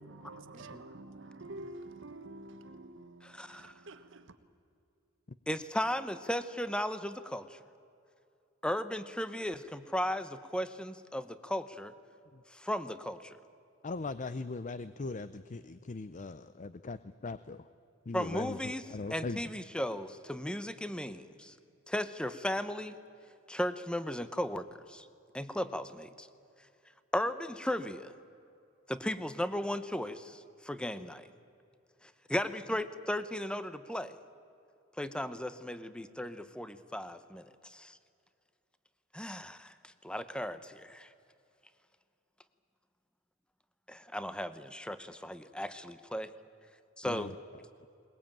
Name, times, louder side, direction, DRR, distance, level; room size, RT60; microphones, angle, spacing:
voice 1, 0.0-4.3, right 2 dB, 65° right, 1.4 m, -48 dB
voice 2, 3.2-3.7 5.5-7.6 8.6-11.9 12.5-13.4 18.1-21.5 21.9-23.0 23.5-25.1 25.3-26.3 27.1-28.1 28.9-31.3 32.0-34.1 35.0-38.0 39.1-41.1 43.9-46.3 47.0-47.4, equal, 5° left, 0.9 m, -36 dB
voice 3, 13.8-17.0 17.2-17.6 18.1-18.5 18.9-19.4 47.1-47.3, left 3 dB, 40° left, 0.6 m, -39 dB
21.5 x 21.0 x 9.0 m
head